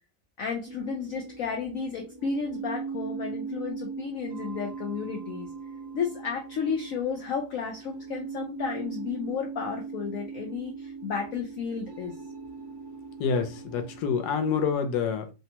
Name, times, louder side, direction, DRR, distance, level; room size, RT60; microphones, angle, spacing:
voice 1, 0.4-5.5 5.9-12.2, left 6 dB, 90° left, 0.7 m, -32 dB
sound 1, 0.6-14.7, right 5 dB, 65° right, 1.1 m, -39 dB
voice 2, 13.2-15.3, left 6 dB, 70° left, 1.1 m, -27 dB
3.3 x 2.1 x 2.8 m
omnidirectional pair, 2.0 m